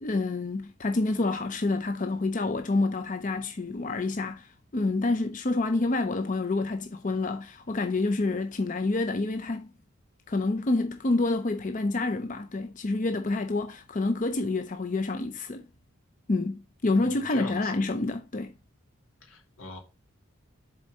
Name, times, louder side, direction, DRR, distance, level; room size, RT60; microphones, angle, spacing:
voice 1, 0.0-9.7 10.3-15.7 16.3-18.6, left 2 dB, 35° left, 0.5 m, -28 dB
voice 2, 16.9-17.7 19.3-19.8, left 3 dB, 85° left, 2.7 m, -42 dB
7.1 x 4.4 x 5.1 m
head